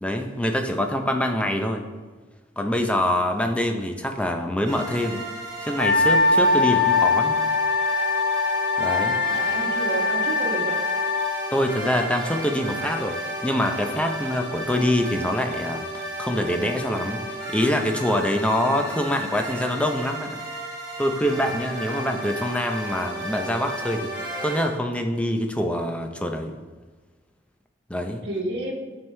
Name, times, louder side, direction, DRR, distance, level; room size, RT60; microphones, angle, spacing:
voice 1, 0.0-1.9 2.6-5.2 5.6-7.4 8.8-9.2 11.5-20.4 21.0-24.1 24.4-26.5 27.9-28.2, left 1 dB, 5° left, 4 dB, 0.5 m, -25 dB
sound 1, 4.7-24.6, right 1 dB, 20° right, 2.1 m, -33 dB
Wind instrument woodwind instrument, 5.8-11.3, left 3 dB, 70° left, 0.5 m, -22 dB
voice 2, 9.3-10.8 28.2-29.0, right 1 dB, 60° right, 0 dB, 1.2 m, -30 dB
11.0 x 4.6 x 3.3 m, 1.3 s
head